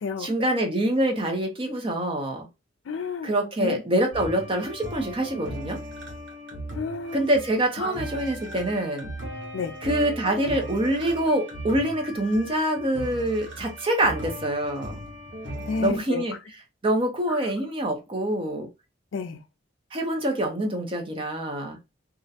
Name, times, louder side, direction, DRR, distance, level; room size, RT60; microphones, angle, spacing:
voice 1, 0.2-2.5 3.2-5.8 7.1-9.1 9.8-14.9 15.8-16.3 16.8-18.7 19.9-21.8, right 1 dB, 25° right, 0.5 m, -25 dB
voice 2, 2.9-3.3 3.6-3.8 6.7-7.3 7.8-8.0 9.5-9.8 15.6-16.2 17.3-17.4 19.1-19.4, left 5 dB, 75° left, 0.4 m, -30 dB
sound 1, 4.1-15.9, equal, 65° right, 0.8 m, -37 dB
2.4 x 2.1 x 2.6 m
head